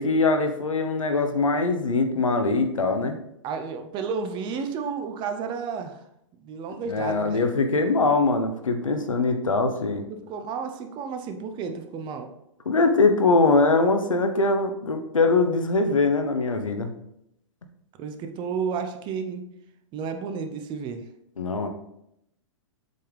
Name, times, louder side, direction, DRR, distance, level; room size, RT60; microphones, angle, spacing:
voice 1, 0.0-3.2 6.8-10.0 12.6-16.9 21.4-21.7, left 3 dB, 85° left, 7 dB, 1.0 m, -22 dB
voice 2, 3.4-6.0 6.4-7.4 10.1-12.3 18.0-19.4 19.9-21.0, right 5 dB, 30° right, 7 dB, 0.8 m, -32 dB
7.6 x 5.7 x 3.4 m, 0.79 s
hypercardioid pair, 115°, 16 cm